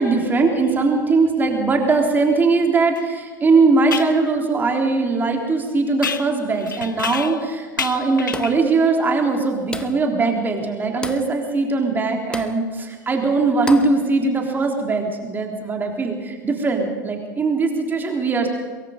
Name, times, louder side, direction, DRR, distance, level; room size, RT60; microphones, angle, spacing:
voice 1, 0.0-18.5, right 3 dB, 20° right, 2 dB, 3.6 m, -20 dB
sound 1, 3.0-3.1 3.9-4.2 6.0-7.5 7.8-8.7, left 6 dB, 75° left, 0.9 m, -29 dB
sound 2, 8.3-8.7 9.7-10.1 11.0-11.3 12.3-12.6 13.7-14.0, left 2 dB, 10° left, 1.2 m, -32 dB
23.0 x 22.5 x 5.4 m, 1.4 s
figure-of-eight pair, 85°, 11 cm